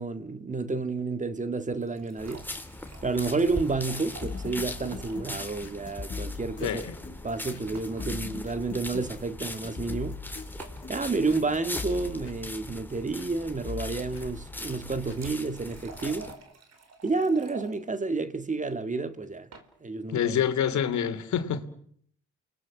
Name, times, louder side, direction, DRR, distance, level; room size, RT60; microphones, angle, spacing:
voice 1, 0.0-2.4 3.0-6.8 7.2-10.2 10.9-16.3 17.0-19.5 19.8-20.3, right 3 dB, 25° right, 1.8 m, -30 dB
sound 1, 1.6-5.3 5.6-5.7 5.9-6.0 7.7-8.1 9.1-9.2 10.6-10.9 14.6-17.7 19.2-19.7, right 4 dB, 60° right, 4.6 m, -48 dB
sound 2, 2.2-16.3, left 1 dB, 5° left, 3.2 m, -40 dB
sound 3, 4.2-13.4 13.7-15.2 16.0-16.1, left 5 dB, 35° left, 6.0 m, -41 dB
voice 2, 6.6-6.9 20.1-21.6, left 8 dB, 70° left, 2.8 m, -27 dB
29.5 x 21.5 x 7.6 m
cardioid pair, 90°, 30 cm